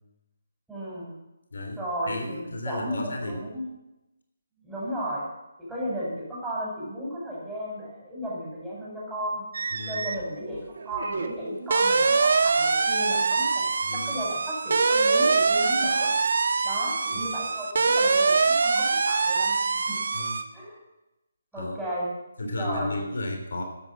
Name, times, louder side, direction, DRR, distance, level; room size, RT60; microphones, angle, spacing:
voice 1, 0.7-1.1 1.8-3.6 4.6-5.2 5.6-9.4 9.9-13.6 13.9-16.1 16.6-19.5 19.9-20.0 20.5-20.8 21.5-22.1 22.6-23.0, equal, 5° right, -7 dB, 6.5 m, -34 dB
voice 2, 2.1-3.4 9.7-10.1 13.8-14.1 20.1-20.4 21.6-21.8 22.4-23.6, left 1 dB, 75° left, 4 dB, 3.6 m, -33 dB
sound 1, 9.5-10.2 10.5-20.4, right 4 dB, 65° right, 1.4 m, -24 dB
12.5 x 10.5 x 7.4 m, 0.96 s
figure-of-eight pair, 155°, 0 cm